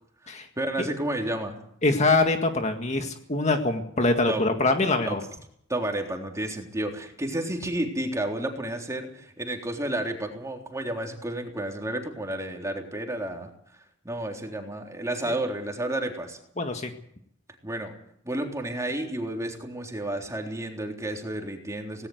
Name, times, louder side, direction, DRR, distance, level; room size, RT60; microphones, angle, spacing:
voice 1, 0.6-1.6 4.3-4.4 5.0-5.2 5.7-16.4 17.5-17.9 18.2-22.1, right 1 dB, 15° right, 2 dB, 3.6 m, -31 dB
voice 2, 1.8-5.2 15.3-15.4 16.6-16.9, left 2 dB, 35° left, 6 dB, 1.8 m, -24 dB
18.5 x 18.0 x 7.9 m, 0.68 s
head